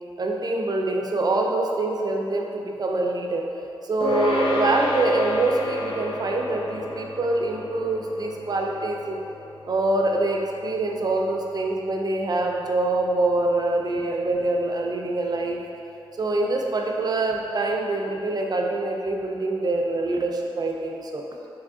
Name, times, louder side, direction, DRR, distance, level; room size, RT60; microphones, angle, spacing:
voice 1, 0.2-3.5 3.8-9.2 9.7-15.6 16.2-21.2, right 2 dB, 40° right, 1 dB, 0.3 m, -25 dB
sound 1, 4.0-13.7, left 1 dB, 65° left, 0.6 m, -32 dB
3.5 x 3.0 x 3.6 m, 2.7 s
wide cardioid pair, 150°, 10 cm